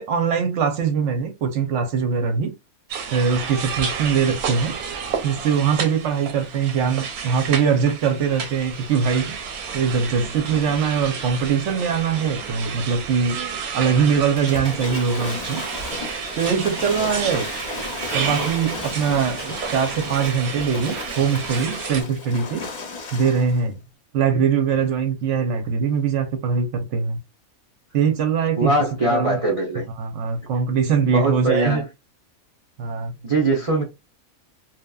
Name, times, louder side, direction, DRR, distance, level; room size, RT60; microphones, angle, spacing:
voice 1, 0.0-2.5 3.1-4.8 5.2-13.4 13.7-15.6 16.4-17.5 18.1-22.7 23.1-23.8 24.1-27.2 27.9-28.7 29.0-29.4 30.0-31.8 32.8-33.1, right 6 dB, 65° right, 0.8 m, -22 dB
sound 1, 2.9-22.0, right 6 dB, 90° right, 1.1 m, -31 dB
Waves surf / Splash splatter, 14.4-23.6, left 4 dB, 45° left, 0.6 m, -34 dB
voice 2, 28.6-29.9 31.0-31.9 33.2-33.8, right 2 dB, 45° right, 0.4 m, -21 dB
2.8 x 2.2 x 2.2 m
omnidirectional pair, 1.5 m